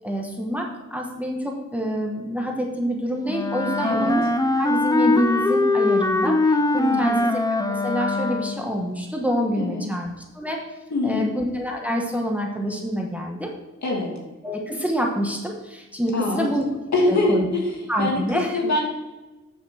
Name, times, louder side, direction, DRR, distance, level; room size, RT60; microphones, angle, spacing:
voice 1, 0.0-4.3 4.6-10.7 11.0-13.5 14.4-16.7 17.0-17.5 17.9-18.6, equal, 5° right, 1 dB, 1.1 m, -27 dB
Wind instrument woodwind instrument, 3.3-8.7, left 2 dB, 10° left, 0.5 m, -22 dB
voice 2, 3.8-4.1 6.8-7.2 9.6-9.8 10.9-11.3 13.8-14.1 16.1-16.5 16.9-18.2 18.5-18.8, left 2 dB, 70° left, -1 dB, 2.4 m, -24 dB
8.9 x 5.8 x 6.1 m, 1.1 s
wide cardioid pair, 175°, 29 cm